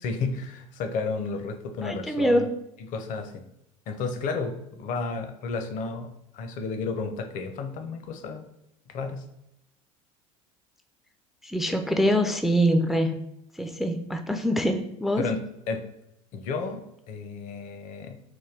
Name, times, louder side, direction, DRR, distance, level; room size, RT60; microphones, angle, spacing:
voice 1, 0.0-2.5 2.9-3.4 3.9-6.1 6.3-8.5 8.9-9.2 15.2-15.4 15.7-15.8 16.3-18.2, left 4 dB, 50° left, 6 dB, 0.6 m, -32 dB
voice 2, 1.8-2.5 11.4-13.2 13.5-15.3, equal, ahead, 5 dB, 0.3 m, -24 dB
3.1 x 2.2 x 3.3 m, 0.84 s
hypercardioid pair, 80°, 17 cm